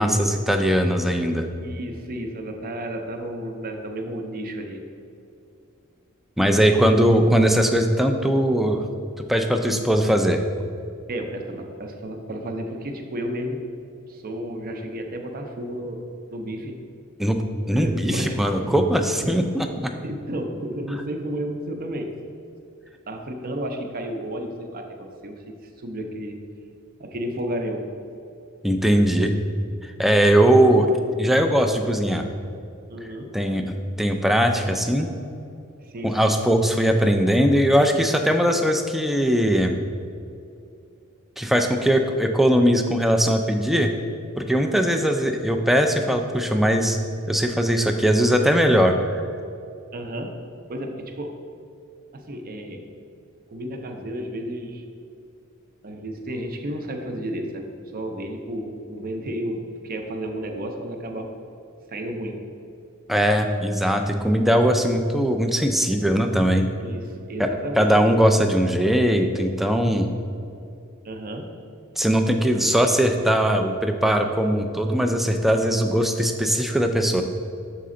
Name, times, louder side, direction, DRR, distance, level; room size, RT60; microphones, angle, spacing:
voice 1, 0.0-1.5 6.4-8.8 9.2-10.4 17.2-20.0 28.6-29.3 29.8-30.9 31.2-32.3 33.3-35.1 36.0-39.8 41.4-44.0 44.4-47.0 47.3-49.2 63.1-66.7 67.4-70.1 72.0-77.2, equal, ahead, 5 dB, 0.3 m, -20 dB
voice 2, 1.6-4.9 11.1-13.6 14.1-16.0 16.3-16.8 17.7-18.7 19.2-19.4 20.0-22.2 23.1-26.4 27.0-27.9 32.9-33.3 35.8-36.4 49.9-50.4 50.7-51.4 52.1-52.8 53.5-54.8 55.8-61.3 61.9-62.4 66.8-67.9 71.0-71.5, right 1 dB, 45° right, 4 dB, 0.6 m, -32 dB
6.8 x 4.2 x 3.7 m, 2.6 s
head